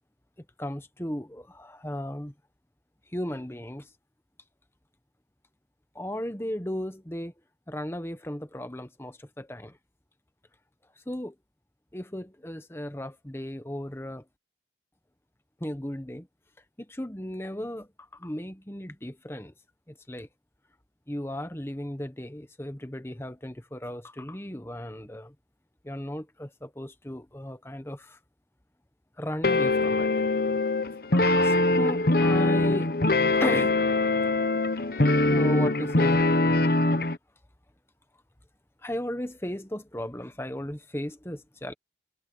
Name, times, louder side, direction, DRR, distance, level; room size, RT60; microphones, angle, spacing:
voice 1, 0.6-2.3 3.1-3.9 5.9-7.3 7.7-9.7 11.1-11.3 11.9-14.2 15.6-16.3 16.8-19.5 20.1-20.3 21.1-25.3 25.8-28.2 29.2-30.1 31.1-32.9 33.4-33.8 35.3-36.2 38.8-41.7, left 1 dB, 15° left, 1.2 m, -35 dB
sound 1, 29.4-37.2, left 2 dB, 55° left, 1.0 m, -23 dB
head